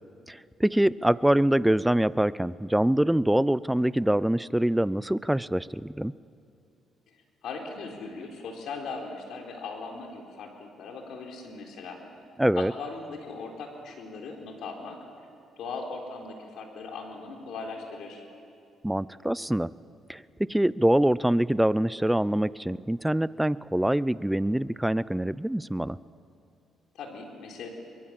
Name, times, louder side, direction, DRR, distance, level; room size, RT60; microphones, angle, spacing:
voice 1, 0.3-6.1 12.4-12.7 18.8-19.7 20.1-20.2 20.5-26.0, right 1 dB, 5° right, 19 dB, 0.5 m, -24 dB
voice 2, 7.4-12.0 12.6-15.0 15.6-18.2 26.9-27.7, left 4 dB, 75° left, 2 dB, 3.8 m, -39 dB
23.5 x 22.5 x 7.6 m, 2.5 s
cardioid pair, 90°, 0 cm